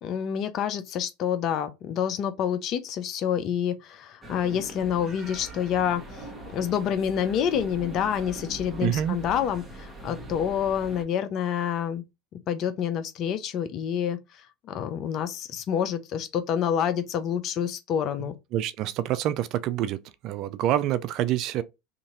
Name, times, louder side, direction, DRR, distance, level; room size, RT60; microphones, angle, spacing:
voice 1, 0.0-6.2 6.5-12.0 12.3-14.2 14.6-18.4, left 8 dB, 50° left, 0.6 m, -28 dB
sound 1, 4.2-11.0, right 1 dB, 15° right, 1.1 m, -42 dB
voice 2, 8.8-9.2 18.5-20.0 20.2-21.6, right 12 dB, 55° right, 0.4 m, -26 dB
2.9 x 2.6 x 3.8 m
hypercardioid pair, 85°, 0 cm